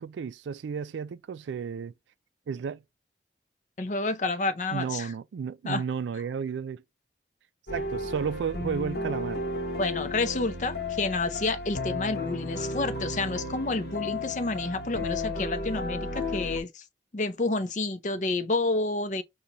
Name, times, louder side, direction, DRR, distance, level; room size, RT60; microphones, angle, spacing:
voice 1, 0.0-1.9 2.5-2.8 4.7-6.8 7.7-9.4, right 6 dB, 90° right, 0.3 m, -33 dB
voice 2, 3.8-5.1 5.6-5.8 9.8-16.8 17.1-19.2, left 3 dB, 45° left, 0.5 m, -29 dB
sound 1, 7.7-16.6, left 2 dB, 70° left, 0.8 m, -33 dB
5.2 x 2.3 x 2.9 m
head